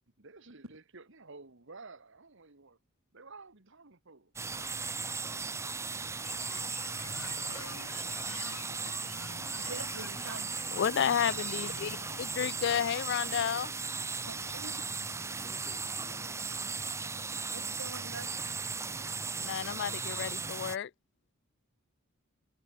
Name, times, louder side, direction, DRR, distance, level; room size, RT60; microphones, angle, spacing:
voice 1, 0.2-2.8 3.1-4.3 14.0-14.3 16.7-17.8, right 3 dB, 60° right, 1.9 m, -53 dB
sound 1, 4.4-20.8, right 4 dB, 15° right, 0.6 m, -37 dB
sound 2, 6.2-12.9, left 5 dB, 80° left, 2.9 m, -48 dB
voice 2, 9.7-10.8 14.3-14.7 17.5-18.7, right 3 dB, 80° right, 7.4 m, -45 dB
voice 3, 10.7-13.7 19.4-20.9, left 8 dB, 55° left, 0.4 m, -31 dB
voice 4, 14.5-14.9 15.4-16.4, equal, 15° left, 6.5 m, -61 dB
head